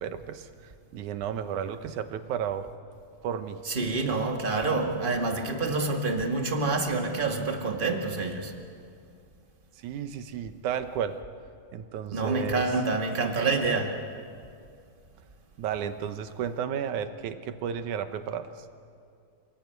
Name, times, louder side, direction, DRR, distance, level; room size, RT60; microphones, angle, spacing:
voice 1, 0.0-2.7 3.2-3.6 9.8-11.2 11.7-12.7 15.6-18.7, right 8 dB, 75° right, 10 dB, 2.4 m, -33 dB
voice 2, 3.7-8.5 12.1-14.0, right 3 dB, 20° right, 3 dB, 1.5 m, -27 dB
29.0 x 19.5 x 9.3 m, 2.4 s
omnidirectional pair, 3.6 m